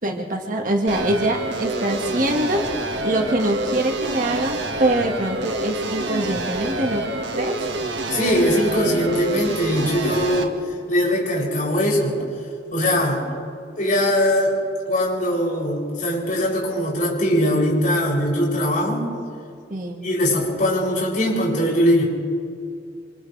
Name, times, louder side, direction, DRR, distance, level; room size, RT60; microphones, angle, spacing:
voice 1, 0.0-7.0 7.3-7.6 19.7-20.1, right 1 dB, 45° right, 2 dB, 1.9 m, -24 dB
sound 1, 0.9-10.4, right 2 dB, 75° right, 1.8 m, -27 dB
voice 2, 8.1-10.6 10.9-12.2 12.7-13.2 13.8-14.6 14.9-19.1 20.0-22.0, equal, 45° left, -4 dB, 7.6 m, -21 dB
29.5 x 26.5 x 3.4 m, 2.3 s
head